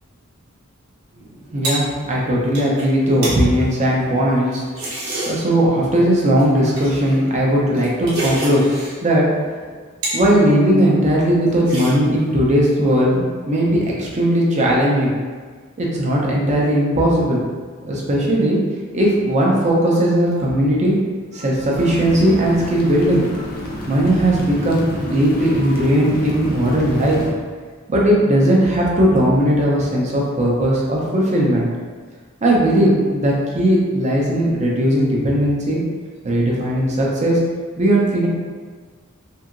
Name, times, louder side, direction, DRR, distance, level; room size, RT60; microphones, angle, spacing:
sound 1, 1.1-5.6 6.4-9.0 9.4-10.3 10.6-11.1 11.5-12.3, right 1 dB, 70° right, 0.9 m, -30 dB
voice 1, 1.5-4.6 5.3-8.6 9.0-9.3 10.1-15.1 15.8-17.5 17.8-18.6 18.9-20.9 21.3-23.3 23.9-27.2 27.9-31.7 32.4-35.8 36.2-37.4 37.8-38.3, right 1 dB, 35° right, -4 dB, 0.5 m, -17 dB
sound 2, 21.7-27.3, left 1 dB, 45° left, 0.5 m, -30 dB
2.7 x 2.7 x 2.4 m, 1.5 s
head